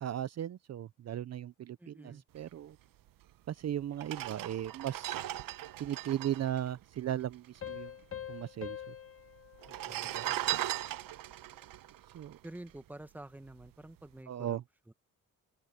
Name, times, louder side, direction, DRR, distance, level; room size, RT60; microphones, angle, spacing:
voice 1, 0.0-2.8 3.5-5.2 5.8-7.9 8.3-8.9 10.1-10.3 12.1-12.4 14.3-14.6, right 11 dB, 50° right, 0.6 m, -37 dB
voice 2, 1.8-2.2 9.7-10.6 12.4-14.6 14.9-15.0, right 1 dB, 5° right, 1.1 m, -49 dB
sound 1, 3.3-3.4 3.9-7.6 7.9-8.0 8.2-8.9 9.5-13.0 13.5-13.7, right 14 dB, 80° right, 0.9 m, -38 dB
Piano, 7.6-10.9, left 10 dB, 40° left, 1.2 m, -45 dB
open air
cardioid pair, 115°, 34 cm